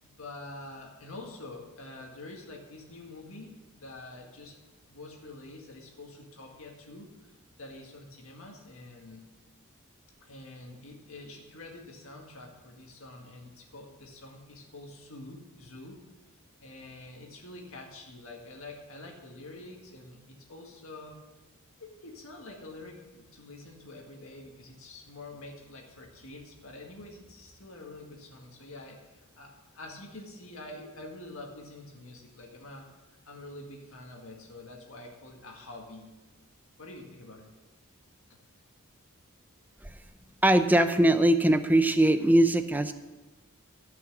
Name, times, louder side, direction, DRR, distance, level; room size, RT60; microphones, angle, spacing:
voice 1, 0.0-4.6 4.9-9.2 10.2-16.0 16.6-21.2 21.8-32.9 33.3-36.1 36.8-37.5 38.3-38.4, left 2 dB, 65° left, 0 dB, 2.0 m, -46 dB
voice 2, 40.4-42.9, right 1 dB, 10° right, 9 dB, 0.6 m, -21 dB
14.0 x 6.1 x 7.2 m, 1.1 s
head